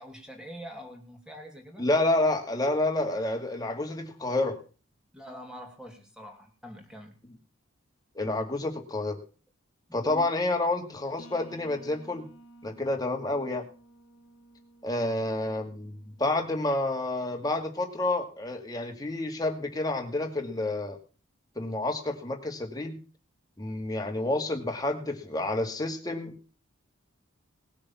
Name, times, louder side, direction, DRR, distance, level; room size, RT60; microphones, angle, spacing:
voice 1, 0.0-1.9 5.1-7.2 9.9-10.3, equal, 5° right, 3 dB, 2.8 m, -44 dB
voice 2, 1.8-4.6 8.2-9.2 9.9-12.3 12.6-13.6 14.8-21.0 21.6-23.0 23.6-26.3, left 2 dB, 20° left, 3 dB, 2.3 m, -29 dB
sound 1, 11.2-16.8, right 2 dB, 75° left, 2.1 m, -54 dB
19.0 x 7.0 x 7.0 m, 0.37 s
head